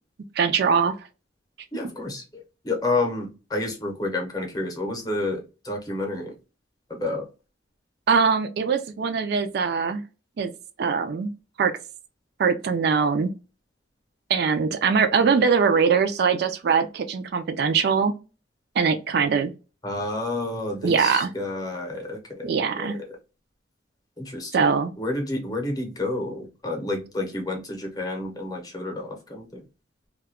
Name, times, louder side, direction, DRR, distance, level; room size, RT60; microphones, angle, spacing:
voice 1, 0.4-0.9 8.1-10.0 10.4-10.5 10.8-11.3 11.6-11.7 12.4-13.3 14.3-18.1 18.8-19.5 20.8-21.3 22.4-23.0 24.5-24.9, right 5 dB, 55° right, 0.3 m, -22 dB
voice 2, 1.7-6.3 6.9-7.3 19.8-22.5 22.8-23.1 24.2-24.7 25.0-29.6, left 2 dB, 20° left, 0.7 m, -30 dB
2.3 x 2.1 x 3.5 m
head